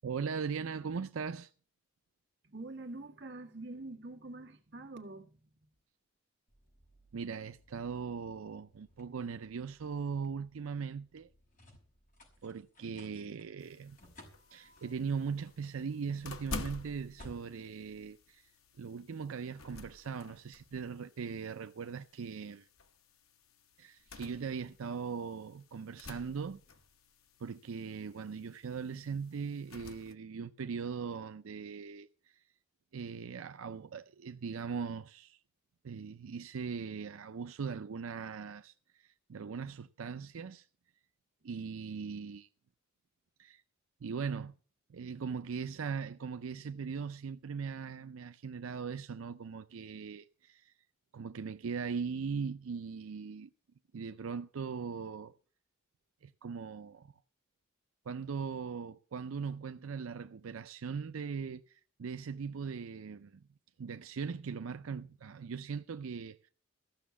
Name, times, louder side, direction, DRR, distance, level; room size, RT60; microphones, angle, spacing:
voice 1, 0.0-1.5 7.1-11.3 12.4-14.0 14.5-18.5 18.8-22.7 23.8-26.6 27.4-32.5 32.9-35.4 35.8-40.7 41.4-42.5 43.4-43.6 44.0-44.5 44.9-50.7 51.1-53.5 53.9-55.3 56.2-57.1 58.1-63.4 63.8-66.5, right 6 dB, 85° right, 0.5 m, -40 dB
voice 2, 2.4-5.4, right 2 dB, 55° right, 1.8 m, -45 dB
sound 1, 6.5-18.8, equal, 40° left, 5.5 m, -61 dB
sound 2, 13.6-30.1, left 3 dB, 90° left, 1.1 m, -50 dB
14.5 x 6.2 x 8.3 m
head